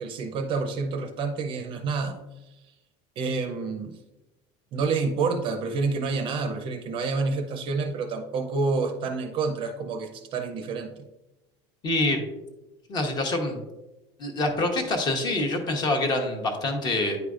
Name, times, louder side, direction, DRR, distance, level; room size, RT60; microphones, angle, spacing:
voice 1, 0.0-2.2 3.2-3.9 4.7-11.0, right 4 dB, 35° right, 6 dB, 0.5 m, -28 dB
voice 2, 11.8-12.2 12.9-13.6 14.2-17.2, left 2 dB, 30° left, 4 dB, 1.0 m, -26 dB
9.3 x 4.9 x 2.4 m, 1.0 s
cardioid pair, 165°, 15 cm